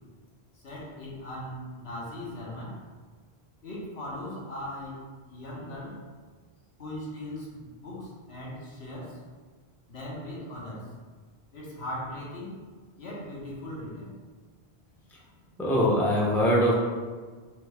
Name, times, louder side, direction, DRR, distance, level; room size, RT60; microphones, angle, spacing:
voice 1, 0.5-2.8 3.6-5.0 5.2-6.0 6.8-9.2 9.9-10.9 11.5-12.6 13.0-14.1, left 1 dB, 75° left, -5 dB, 1.5 m, -39 dB
voice 2, 15.6-16.7, equal, ahead, -5 dB, 0.8 m, -23 dB
4.3 x 3.6 x 3.4 m, 1.4 s
omnidirectional pair, 1.1 m